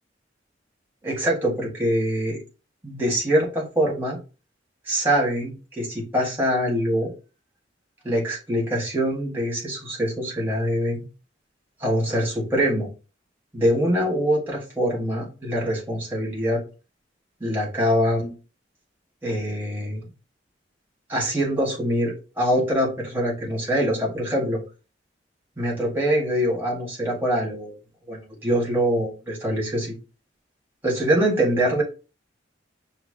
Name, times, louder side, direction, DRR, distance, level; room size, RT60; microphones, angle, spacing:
voice 1, 1.0-2.4 2.8-4.2 4.9-7.1 8.0-11.0 11.8-12.9 13.5-16.6 17.4-18.3 19.2-20.0 21.1-24.6 25.6-27.7 28.1-30.0 30.8-31.8, equal, 10° right, -3 dB, 1.8 m, -24 dB
5.7 x 2.9 x 2.8 m, 0.32 s
head